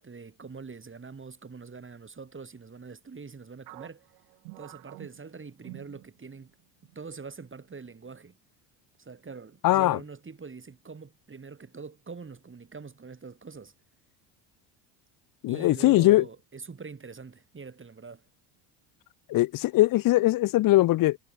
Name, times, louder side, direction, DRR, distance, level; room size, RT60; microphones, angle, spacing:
voice 1, 0.0-4.0 4.6-6.5 7.0-8.4 9.0-13.7 15.5-18.2, right 4 dB, 25° right, 5.1 m, -44 dB
sound 1, 3.7-6.5 6.8-7.0 7.7-8.1, right 38 dB, 85° right, 2.9 m, -48 dB
voice 2, 9.6-10.0 15.4-16.2 19.3-21.2, left 17 dB, 45° left, 0.5 m, -21 dB
supercardioid pair, 85°, 47 cm